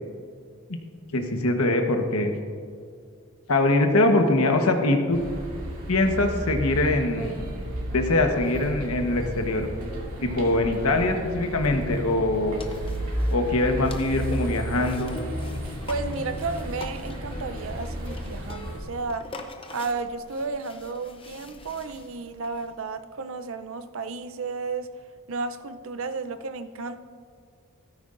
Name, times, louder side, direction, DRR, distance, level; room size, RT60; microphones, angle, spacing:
voice 1, 1.1-2.3 3.5-5.2 5.9-7.3 7.9-9.7 10.2-12.6 13.3-15.2, left 2 dB, 80° left, 5 dB, 1.2 m, -23 dB
Cafeteria exterior (next to road and supermarket), 5.1-18.8, right 1 dB, 80° right, 2.4 m, -33 dB
sound 1, 12.6-22.7, left 2 dB, 25° left, 0.7 m, -44 dB
voice 2, 15.9-19.3 19.7-24.9 25.3-27.0, right 4 dB, 65° right, 10 dB, 0.6 m, -33 dB
13.5 x 13.5 x 2.6 m, 2.2 s
head